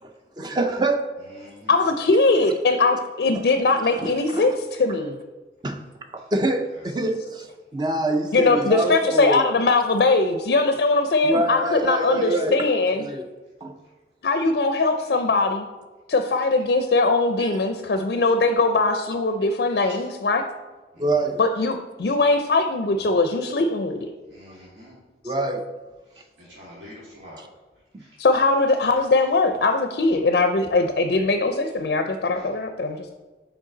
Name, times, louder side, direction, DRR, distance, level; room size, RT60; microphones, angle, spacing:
voice 1, 0.4-1.2 3.8-4.6 5.6-5.8 6.1-9.4 11.2-12.7 13.0-13.3 13.6-13.8 17.4-17.5 21.0-21.4 25.2-25.7 27.9-28.0, right 2 dB, 25° right, 6 dB, 0.5 m, -25 dB
voice 2, 1.2-1.8 4.0-4.1 6.2-6.3 6.7-6.9 8.5-8.7 11.4-11.6 13.8-13.9 15.0-15.2 19.9-20.1 20.9-21.2 24.3-25.0 26.0-27.4 27.7-28.2 31.6-31.7 32.3-32.5, equal, 85° right, -7 dB, 2.0 m, -47 dB
voice 3, 1.7-4.5 4.8-5.2 8.3-13.0 14.2-15.7 16.1-20.4 21.4-24.1 25.3-25.4 28.2-33.1, left 3 dB, 60° left, 7 dB, 0.4 m, -21 dB
6.4 x 4.7 x 3.8 m, 1.2 s
head